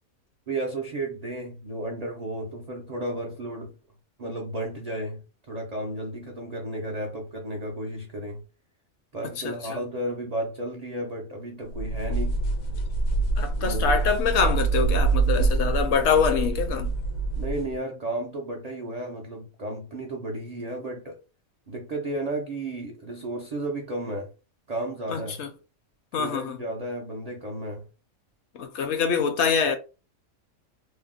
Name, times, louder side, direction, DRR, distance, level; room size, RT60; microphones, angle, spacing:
voice 1, 0.5-3.7 4.2-8.4 9.1-12.4 13.6-14.1 15.4-15.7 17.4-21.2 21.7-24.3 24.7-25.4 26.2-27.8, right 1 dB, 65° right, 0.4 m, -33 dB
sound 1, 11.7-17.7, right 3 dB, 85° left, 1.1 m, -25 dB
voice 2, 13.4-16.9 25.1-25.5 26.1-26.6 28.6-29.8, left 6 dB, 65° left, 0.7 m, -25 dB
2.7 x 2.0 x 3.5 m
omnidirectional pair, 1.4 m